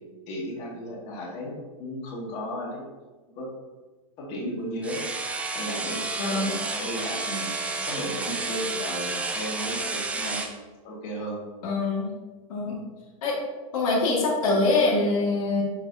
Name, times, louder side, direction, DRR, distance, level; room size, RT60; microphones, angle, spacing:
voice 1, 0.3-1.5 1.8-2.8 3.4-3.5 4.2-5.0 5.5-6.0 6.3-10.4 10.8-11.4 12.7-12.8, equal, 40° left, -4 dB, 2.0 m, -34 dB
sound 1, 4.8-10.5, right 3 dB, 5° right, 0.5 m, -31 dB
voice 2, 6.2-6.5 11.6-12.1 12.5-12.8 13.2-13.4 13.7-15.6, left 3 dB, 75° left, -2 dB, 1.9 m, -24 dB
10.5 x 4.4 x 2.7 m, 1.3 s
supercardioid pair, 150°, 18 cm